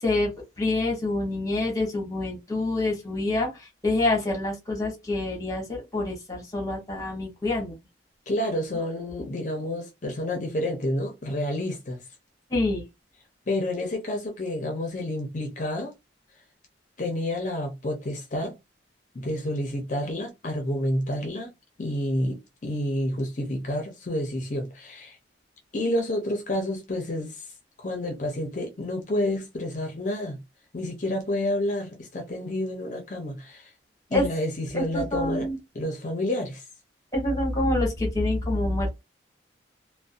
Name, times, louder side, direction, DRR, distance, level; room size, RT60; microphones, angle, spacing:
voice 1, 0.6-7.8 12.5-12.8 34.1-34.2 34.7-35.6 37.1-39.0, left 2 dB, 20° left, 1.0 m, -26 dB
voice 2, 8.3-12.0 13.5-15.9 17.0-18.6 19.1-21.5 21.8-25.2 25.7-27.5 27.8-30.4 30.7-33.7 34.1-35.5 35.7-36.6, left 1 dB, 40° left, 0.5 m, -29 dB
2.5 x 2.1 x 2.5 m
head